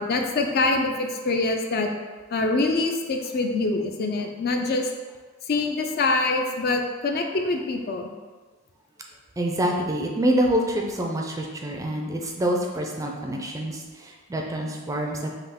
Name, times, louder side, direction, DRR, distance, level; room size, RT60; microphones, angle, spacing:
voice 1, 0.0-1.9 2.3-4.9 5.5-8.1, left 3 dB, 50° left, 4 dB, 0.4 m, -25 dB
voice 2, 9.4-15.3, right 1 dB, 15° right, 0 dB, 0.4 m, -26 dB
5.5 x 2.3 x 3.5 m, 1.3 s
head